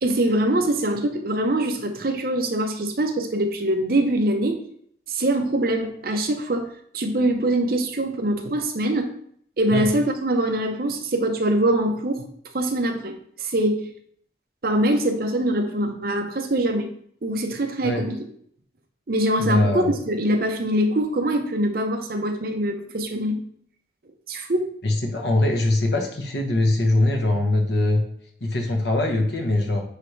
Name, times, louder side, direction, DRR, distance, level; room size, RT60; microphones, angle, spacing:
voice 1, 0.0-4.6 5.1-6.7 6.9-9.1 9.6-12.3 12.5-13.9 14.6-16.9 17.2-18.3 19.1-23.4 24.3-24.7, right 1 dB, 55° right, 5 dB, 0.7 m, -23 dB
voice 2, 19.4-19.9 24.8-28.0 28.4-29.8, left 2 dB, 65° left, 3 dB, 1.1 m, -22 dB
9.6 x 3.3 x 3.2 m, 0.64 s
head